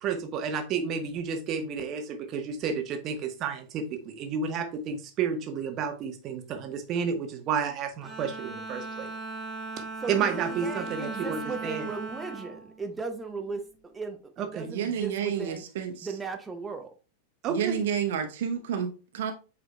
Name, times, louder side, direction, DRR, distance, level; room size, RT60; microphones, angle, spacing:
voice 1, 0.0-9.1 10.1-11.9 14.4-14.7 17.4-17.8, right 6 dB, 35° right, 1.2 m, -31 dB
Bowed string instrument, 8.0-13.5, right 3 dB, 10° left, 2.6 m, -38 dB
voice 2, 10.0-15.6 16.0-16.9, right 4 dB, 15° right, 0.8 m, -37 dB
voice 3, 14.7-16.1 17.5-19.3, right 8 dB, 55° right, 0.8 m, -30 dB
8.0 x 5.2 x 2.3 m
figure-of-eight pair, 90°, 0 cm